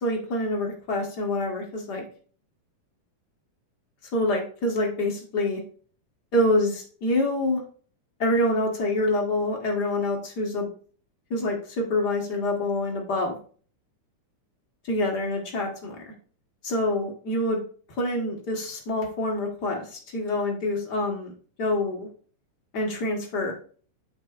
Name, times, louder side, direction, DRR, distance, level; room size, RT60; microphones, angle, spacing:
voice 1, 0.0-2.0 4.1-5.6 6.3-7.6 8.2-10.7 11.3-13.4 14.9-16.1 16.6-17.6 18.0-21.3 21.6-22.1 22.7-23.5, left 1 dB, 50° left, 0 dB, 1.2 m, -26 dB
8.7 x 7.4 x 2.5 m, 0.43 s
omnidirectional pair, 3.6 m